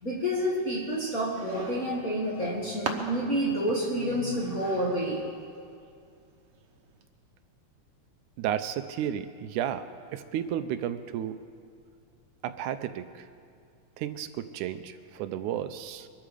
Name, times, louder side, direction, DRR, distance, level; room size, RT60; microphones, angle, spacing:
voice 1, 0.0-5.2, equal, 35° left, -4 dB, 1.8 m, -29 dB
sound 1, 1.9-7.0, right 5 dB, 60° right, 1.8 m, -42 dB
voice 2, 8.4-11.4 12.4-13.3 14.0-16.1, right 10 dB, 85° right, 10 dB, 2.0 m, -33 dB
23.0 x 12.5 x 5.0 m, 2.3 s
omnidirectional pair, 3.6 m